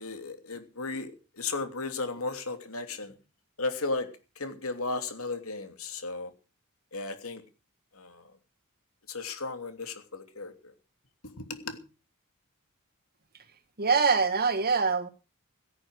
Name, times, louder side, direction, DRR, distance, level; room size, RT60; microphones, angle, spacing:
voice 1, 0.0-3.1 3.6-4.1 4.4-6.3 6.9-7.4 7.9-8.2 9.1-10.7 11.4-11.8, left 3 dB, 70° left, 3.0 m, -35 dB
voice 2, 13.8-15.1, right 5 dB, 45° right, 1.8 m, -24 dB
16.5 x 9.1 x 6.4 m
head